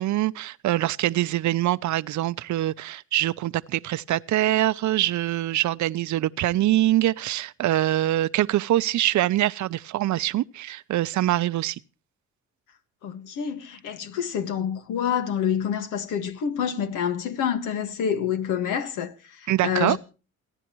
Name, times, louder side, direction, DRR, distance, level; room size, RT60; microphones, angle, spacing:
voice 1, 0.0-11.8 19.5-20.0, right 14 dB, 70° right, 0.7 m, -24 dB
voice 2, 13.0-20.0, left 8 dB, 85° left, 1.7 m, -27 dB
28.5 x 10.0 x 3.1 m
cardioid pair, 90°, 30 cm